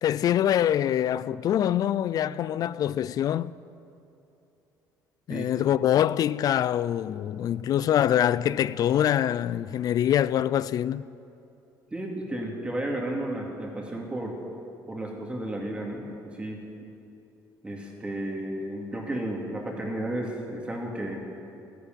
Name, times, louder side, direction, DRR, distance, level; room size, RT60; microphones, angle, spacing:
voice 1, 0.0-3.5 5.3-11.0, left 10 dB, 55° left, 0.4 m, -24 dB
voice 2, 11.9-14.4 14.9-16.7 17.6-21.2, right 1 dB, 15° right, 2.4 m, -33 dB
13.5 x 11.0 x 9.1 m
cardioid pair, 120°, 8 cm